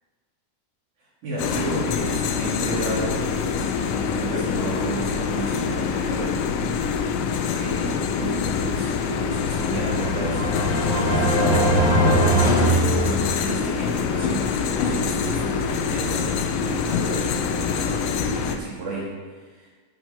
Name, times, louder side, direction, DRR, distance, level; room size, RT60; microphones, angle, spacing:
voice 1, 1.2-6.5 7.5-19.7, right 2 dB, 80° right, -7 dB, 3.5 m, -33 dB
sound 1, 1.4-18.6, left 6 dB, 80° left, 1.4 m, -25 dB
sound 2, 9.3-13.7, right 1 dB, 60° left, 1.1 m, -22 dB
10.0 x 5.1 x 5.9 m, 1.4 s
omnidirectional pair, 3.4 m